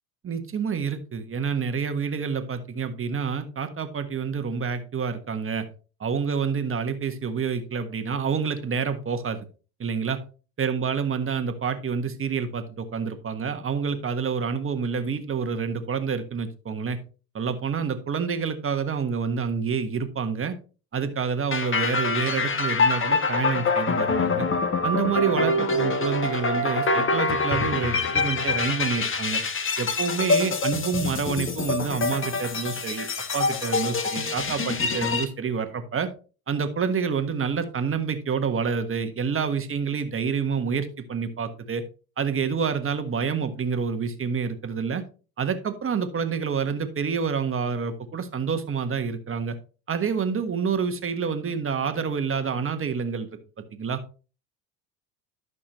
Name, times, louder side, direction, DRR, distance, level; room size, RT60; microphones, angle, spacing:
voice 1, 0.2-5.7 6.0-9.4 9.8-10.2 10.6-17.0 17.3-20.5 20.9-24.5 24.8-29.4 29.8-33.1 33.3-36.1 36.5-41.8 42.2-45.0 45.4-49.6 49.9-53.3 53.7-54.0, right 6 dB, 25° right, 9 dB, 1.5 m, -28 dB
sound 1, 21.5-35.2, left 3 dB, 25° left, 1.4 m, -25 dB
11.5 x 6.2 x 3.1 m, 0.35 s
hypercardioid pair, 75°, 48 cm